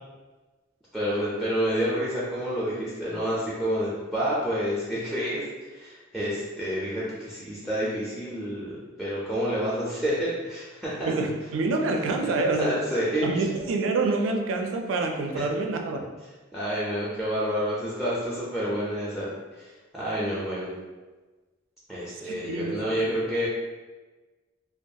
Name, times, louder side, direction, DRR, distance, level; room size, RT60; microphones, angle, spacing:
voice 1, 0.9-5.4 5.7-11.1 12.4-13.5 16.5-19.3 19.6-20.7 21.9-23.5, equal, ahead, -7 dB, 0.4 m, -29 dB
voice 2, 11.1-12.7 13.2-16.0 22.2-22.8, right 3 dB, 75° right, 3 dB, 0.4 m, -26 dB
2.3 x 2.2 x 2.6 m, 1.3 s
head